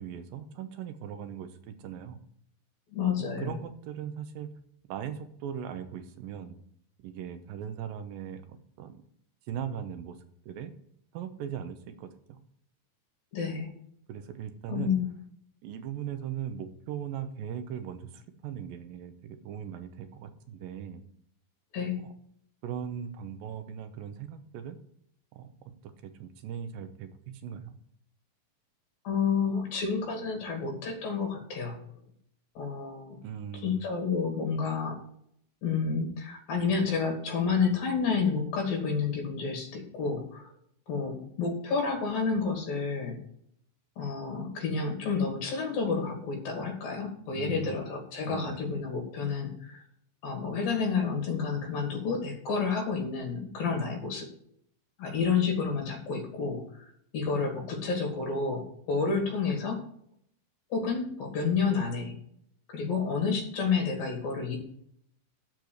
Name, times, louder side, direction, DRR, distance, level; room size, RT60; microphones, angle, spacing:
voice 1, 0.0-2.2 3.4-4.5 4.9-6.6 7.0-9.0 9.5-10.2 10.5-10.7 11.1-12.4 14.1-15.0 15.6-21.0 22.0-22.1 22.6-24.8 25.3-27.8 33.2-33.9 47.3-47.8 48.3-48.6, right 8 dB, 80° right, 9 dB, 2.5 m, -39 dB
voice 2, 2.9-3.5 13.3-13.7 14.7-15.1 21.7-22.0 29.0-31.8 32.6-33.2 33.6-35.0 35.6-40.5 40.9-43.2 44.0-49.8 50.2-54.3 55.0-59.8 60.7-62.1 62.7-64.6, left 5 dB, 75° left, 2 dB, 4.3 m, -30 dB
12.0 x 4.7 x 8.0 m, 0.68 s
omnidirectional pair, 4.2 m